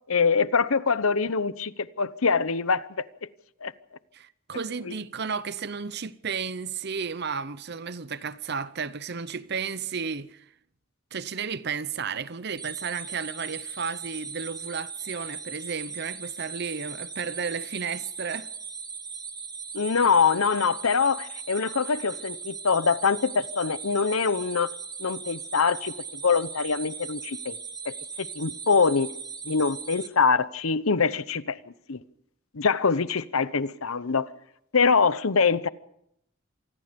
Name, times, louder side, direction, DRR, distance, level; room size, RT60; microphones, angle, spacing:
voice 1, 0.1-1.7 2.0-2.9 3.6-3.7 4.9-5.0 19.7-24.7 25.0-25.9 26.2-27.6 27.8-29.1 29.4-31.6 31.9-32.0 32.5-34.3 34.7-35.7, left 5 dB, 85° left, 0.9 m, -24 dB
voice 2, 4.1-10.5 11.1-18.5, right 6 dB, 50° right, 0.8 m, -33 dB
sound 1, 12.6-30.1, right 5 dB, 20° right, 1.4 m, -39 dB
27.0 x 20.0 x 5.3 m
head